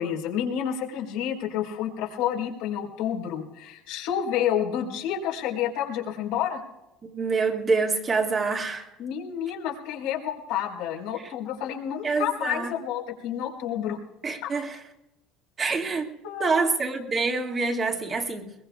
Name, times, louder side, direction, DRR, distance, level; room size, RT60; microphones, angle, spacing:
voice 1, 0.0-6.6 9.0-14.0 14.4-14.5 16.2-16.7, left 9 dB, 75° left, 4.3 m, -29 dB
voice 2, 7.0-8.9 12.0-12.7 14.2-14.8 15.6-16.1 16.4-18.5, right 4 dB, 30° right, 2.2 m, -26 dB
22.0 x 21.5 x 2.4 m
supercardioid pair, 110°, 0 cm